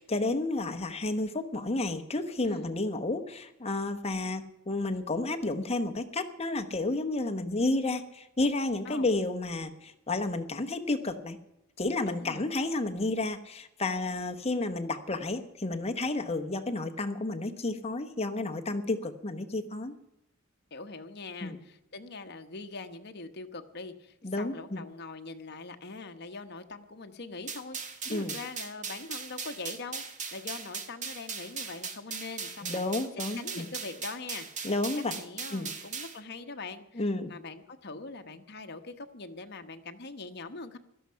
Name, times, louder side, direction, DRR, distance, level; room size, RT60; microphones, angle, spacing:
voice 1, 0.0-11.4 11.8-19.9 21.4-21.6 24.2-24.8 28.1-28.3 32.6-33.6 34.6-35.1 35.5-35.7 37.0-37.4, left 2 dB, 30° left, 8 dB, 1.1 m, -31 dB
voice 2, 12.0-12.4 20.7-30.0 30.3-32.8 33.4-34.7 35.1-40.8, left 3 dB, 55° left, 7 dB, 1.1 m, -42 dB
sound 1, 27.5-36.2, right 5 dB, 35° right, 1.5 m, -39 dB
17.0 x 13.0 x 5.7 m, 0.84 s
head